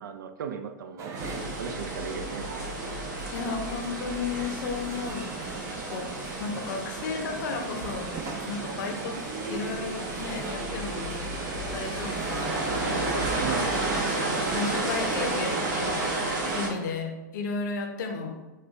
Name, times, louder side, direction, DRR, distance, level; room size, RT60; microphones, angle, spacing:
voice 1, 0.0-1.2 1.6-2.5 13.4-13.8, right 7 dB, 90° right, 7 dB, 0.4 m, -36 dB
sound 1, 1.0-15.3, right 4 dB, 30° right, 0.4 m, -38 dB
sound 2, 1.2-16.7, right 2 dB, 70° right, 1.0 m, -32 dB
voice 2, 3.3-6.1 6.4-8.1 8.4-11.2 11.7-13.4 14.5-16.3 16.5-18.4, left 4 dB, 70° left, 3 dB, 0.6 m, -34 dB
5.0 x 2.2 x 2.5 m, 1.1 s
hypercardioid pair, 130°, 10 cm